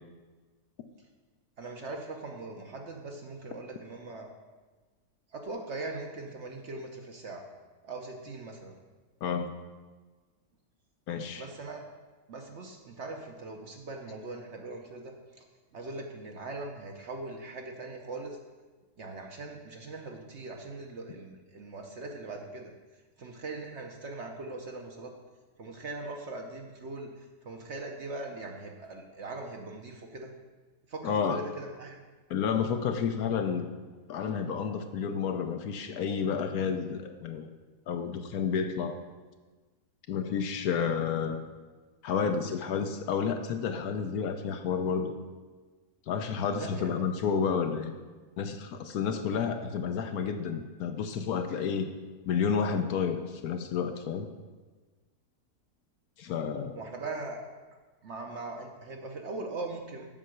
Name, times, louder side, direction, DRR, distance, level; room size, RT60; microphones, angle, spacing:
voice 1, 1.6-4.3 5.3-7.4 7.8-8.8 11.4-11.8 12.3-15.4 15.7-18.4 19.0-22.7 23.2-25.1 25.6-30.3 30.9-32.0 46.6-46.9 56.7-57.5 58.0-60.1, right 2 dB, 55° right, 2 dB, 0.9 m, -40 dB
voice 2, 9.2-9.5 11.1-11.4 31.0-31.5 32.3-33.7 34.1-37.5 37.9-39.0 40.1-41.4 42.0-45.1 46.1-47.9 48.4-51.9 52.3-54.3 56.2-56.7, left 6 dB, 70° left, 7 dB, 1.1 m, -30 dB
7.5 x 5.6 x 6.3 m, 1.3 s
omnidirectional pair, 1.7 m